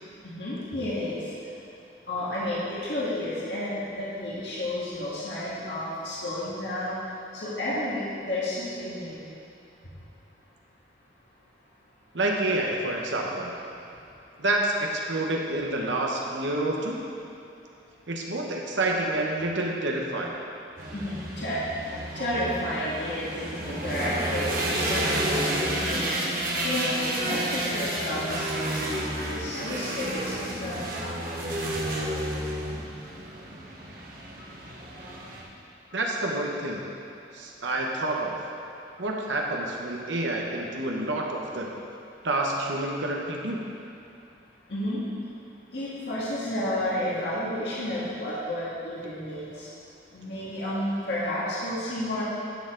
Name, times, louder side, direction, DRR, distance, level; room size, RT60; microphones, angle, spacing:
voice 1, 0.2-1.3 2.1-7.0 7.3-9.2 20.9-21.6 22.1-26.2 26.6-30.9 44.7-45.0 45.7-49.7 50.1-52.2, left 1 dB, 65° left, -8 dB, 1.8 m, -31 dB
voice 2, 12.1-13.5 14.4-17.0 18.1-20.3 35.9-36.8 37.3-38.4 39.0-41.7 42.2-43.6, right 2 dB, 80° right, -1 dB, 1.0 m, -28 dB
sound 1, 20.8-35.4, right 1 dB, 50° right, 1.3 m, -31 dB
11.5 x 6.7 x 3.8 m, 2.6 s
head